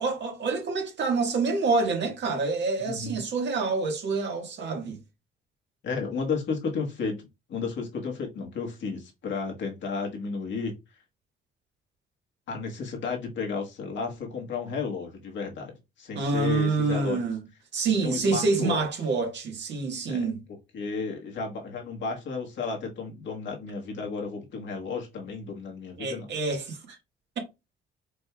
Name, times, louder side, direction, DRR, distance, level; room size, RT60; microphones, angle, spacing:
voice 1, 0.0-5.0 16.1-17.4 17.7-20.4 26.0-27.0, right 4 dB, 60° right, 1.6 m, -27 dB
voice 2, 2.8-3.2 5.8-10.7 12.5-17.2 18.0-18.9 20.1-20.3 20.7-26.3, left 4 dB, 70° left, 1.6 m, -33 dB
5.1 x 3.4 x 2.3 m
cardioid pair, 90°, 20 cm